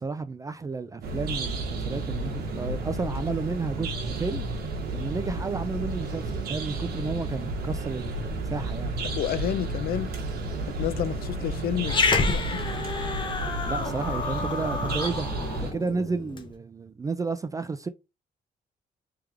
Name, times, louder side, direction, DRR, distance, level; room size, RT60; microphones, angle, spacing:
voice 1, 0.0-4.5 4.9-8.9 13.7-15.3 15.6-17.9, right 4 dB, 20° right, 0.3 m, -32 dB
sound 1, 1.0-15.7, right 2 dB, 85° right, 1.2 m, -32 dB
voice 2, 9.2-10.1 10.7-12.0 12.3-12.7, left 11 dB, 70° left, 0.4 m, -30 dB
Growling, 11.8-16.5, left 4 dB, 30° left, 0.8 m, -29 dB
3.5 x 3.4 x 3.3 m
cardioid pair, 120°, 16 cm